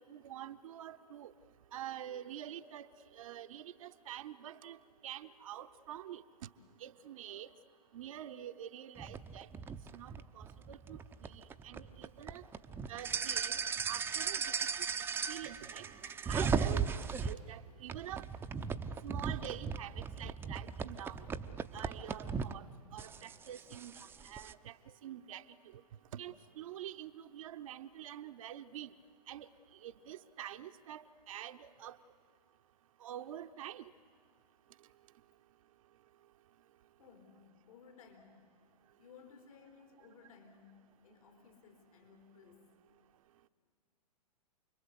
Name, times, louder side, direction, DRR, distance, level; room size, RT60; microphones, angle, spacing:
voice 1, 0.0-1.3 1.7-2.9 3.1-4.8 5.0-6.5 6.8-7.5 7.9-9.5 9.9-12.4 12.9-13.6 13.9-14.5 15.3-18.2 19.0-21.2 21.7-22.7 22.9-24.8 25.0-25.5 25.7-25.8 26.1-28.9 29.3-29.5 29.8-32.0 33.0-33.9, right 11 dB, 55° right, 8 dB, 0.9 m, -46 dB
sound 1, 9.0-17.3 17.9-22.5 23.0-24.5, right 6 dB, 10° right, 0.7 m, -37 dB
voice 2, 37.0-38.5 39.0-42.7, left 6 dB, 60° left, 5 dB, 4.0 m, -59 dB
29.0 x 22.0 x 8.2 m, 2.1 s
figure-of-eight pair, 115°, 21 cm